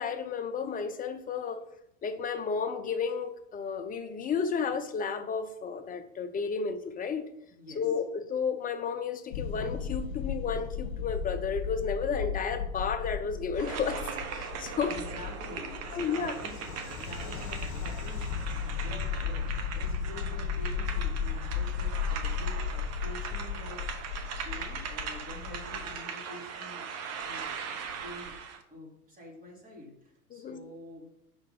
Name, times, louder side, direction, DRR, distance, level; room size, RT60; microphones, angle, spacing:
voice 1, 0.0-1.6 2.0-7.3 7.7-14.0 14.3-15.0 15.9-16.3 30.3-30.6, left 6 dB, 20° left, 8 dB, 0.6 m, -32 dB
voice 2, 7.5-7.9 14.8-16.7 17.0-24.0 24.4-26.9 27.2-27.5 28.0-28.4 28.7-31.1, left 1 dB, 20° right, -2 dB, 2.6 m, -47 dB
sound 1, 9.3-25.9, left 7 dB, 70° left, 1.3 m, -35 dB
sound 2, 13.5-28.6, right 6 dB, 35° right, 1.0 m, -40 dB
5.7 x 5.3 x 5.2 m, 0.80 s
hypercardioid pair, 110°, 43 cm